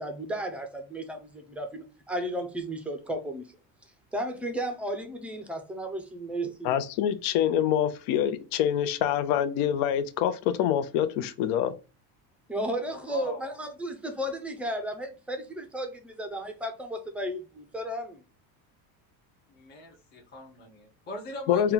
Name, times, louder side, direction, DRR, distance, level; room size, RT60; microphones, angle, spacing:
voice 1, 0.0-3.4 4.1-6.8 12.5-18.2, right 1 dB, 5° right, 0.4 m, -34 dB
voice 2, 6.6-11.7 21.5-21.7, left 10 dB, 75° left, 0.7 m, -25 dB
voice 3, 12.9-13.6 19.5-21.7, left 1 dB, 25° left, 0.7 m, -42 dB
4.3 x 2.3 x 3.7 m
cardioid pair, 155°, 43 cm